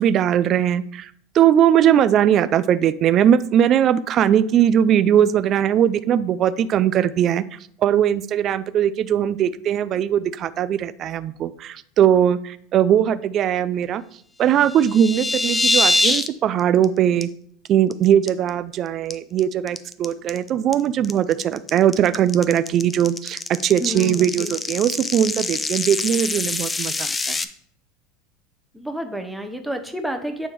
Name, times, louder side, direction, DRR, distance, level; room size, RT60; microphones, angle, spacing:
voice 1, 0.0-14.0 14.4-17.3 17.7-27.4, right 10 dB, 40° right, 14 dB, 0.4 m, -20 dB
sound 1, 14.6-16.3 16.6-16.9 17.2-17.3 17.7-17.9 18.3-18.7 19.1-27.4, left 2 dB, 15° left, 0.5 m, -24 dB
voice 2, 23.7-24.5 28.7-30.5, equal, ahead, 5 dB, 0.9 m, -30 dB
9.2 x 3.6 x 4.6 m, 0.62 s
supercardioid pair, 125°, 0 cm